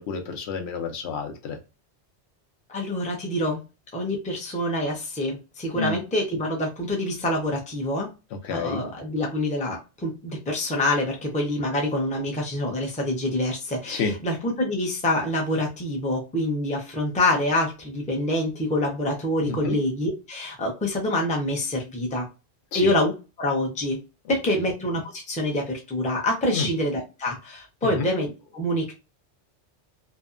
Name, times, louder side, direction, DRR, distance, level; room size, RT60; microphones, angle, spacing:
voice 1, 0.0-1.6 5.7-6.0 8.4-8.8 13.9-14.1 19.5-19.8 22.7-22.9 26.5-26.7 27.8-28.1, left 4 dB, 75° left, 5 dB, 0.9 m, -29 dB
voice 2, 2.7-3.6 3.9-8.1 8.5-22.3 22.7-23.1 23.4-24.0 24.3-28.9, left 1 dB, 10° left, 0 dB, 0.4 m, -26 dB
2.7 x 2.2 x 2.4 m, 0.29 s
omnidirectional pair, 1.1 m